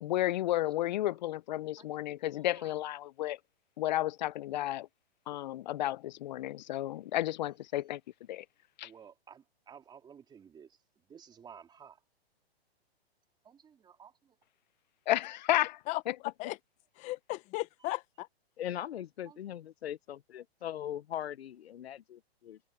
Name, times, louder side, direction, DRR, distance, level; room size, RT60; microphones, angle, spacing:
voice 1, 0.0-3.4 3.8-4.9 5.3-8.0 8.3-8.4 8.8-8.9 15.1-15.8, left 14 dB, 45° left, 0.5 m, -32 dB
voice 2, 2.2-2.7 8.8-10.8 11.1-12.0 13.4-14.1 19.3-19.4, right 7 dB, 15° right, 2.7 m, -54 dB
voice 3, 15.9-16.6 17.0-18.3, left 20 dB, 20° left, 0.9 m, -36 dB
voice 4, 18.6-22.6, left 11 dB, 75° left, 0.9 m, -40 dB
hypercardioid pair, 145°, 32 cm